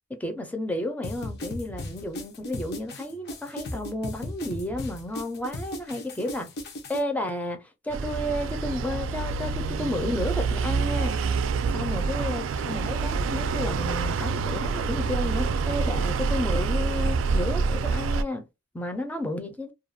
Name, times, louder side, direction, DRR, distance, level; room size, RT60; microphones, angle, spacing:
voice 1, 0.1-6.5 6.9-11.2 11.7-18.5 18.7-19.7, left 1 dB, 10° left, 0.5 m, -32 dB
sound 1, 1.0-7.0, left 1 dB, 60° left, 0.6 m, -37 dB
sound 2, 7.9-18.2, right 4 dB, 80° right, 0.3 m, -27 dB
2.4 x 2.2 x 2.6 m
head